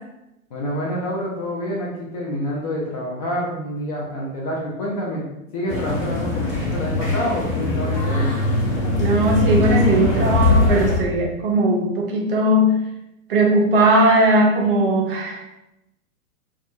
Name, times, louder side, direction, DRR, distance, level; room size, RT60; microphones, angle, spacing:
voice 1, 0.5-5.2 5.5-8.3, equal, 30° left, -4 dB, 0.4 m, -27 dB
sound 1, 5.7-11.0, left 2 dB, 50° left, 0.8 m, -21 dB
voice 2, 9.0-12.8 13.3-15.6, right 1 dB, 40° right, 0 dB, 0.5 m, -18 dB
2.5 x 2.3 x 2.3 m, 0.90 s
figure-of-eight pair, 100°, 42 cm